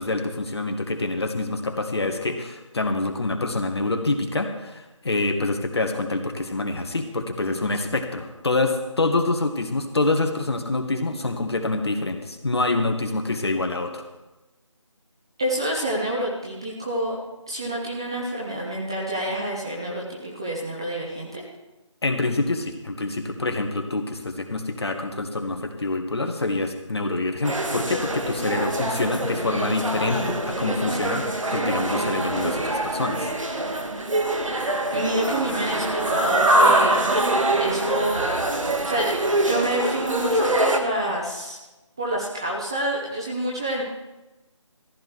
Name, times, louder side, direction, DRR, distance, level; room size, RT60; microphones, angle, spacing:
voice 1, 0.0-14.0 22.0-31.3 31.5-33.3, left 2 dB, 55° left, 5 dB, 1.7 m, -26 dB
voice 2, 15.4-17.1 17.5-21.4 34.9-37.1 37.6-38.2 38.6-39.1 39.4-41.6 42.0-43.8, right 1 dB, 10° right, -3 dB, 0.6 m, -28 dB
sound 1, 27.4-40.8, right 1 dB, 75° right, 1.9 m, -24 dB
14.5 x 12.0 x 4.7 m, 1.1 s
figure-of-eight pair, 165°, 17 cm